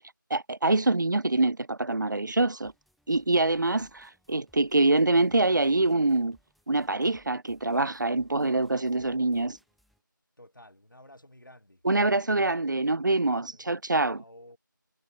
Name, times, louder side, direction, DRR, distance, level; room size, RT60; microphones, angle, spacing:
voice 1, 0.3-2.7 3.1-6.4 6.7-9.6 11.8-14.2, right 2 dB, 65° right, 0.4 m, -25 dB
sound 1, 2.6-10.0, equal, ahead, 4.2 m, -67 dB
voice 2, 10.4-11.8 13.3-13.6 14.1-14.6, left 1 dB, 70° left, 7.1 m, -53 dB
figure-of-eight pair, 175°, 11 cm